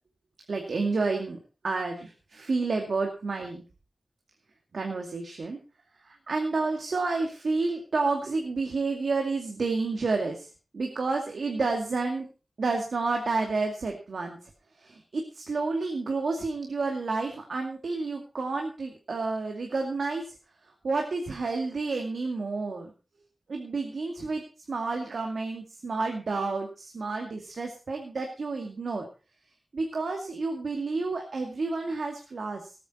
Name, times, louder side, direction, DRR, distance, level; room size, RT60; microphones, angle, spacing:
voice 1, 0.5-1.4 1.6-3.6 4.7-5.6 6.0-10.5 10.7-12.3 12.6-14.5 14.8-20.4 20.8-22.9 23.5-24.4 24.7-29.0 29.7-32.7, right 3 dB, 90° right, 2 dB, 2.3 m, -30 dB
18.5 x 9.3 x 4.4 m, 0.34 s
wide cardioid pair, 90°, 0 cm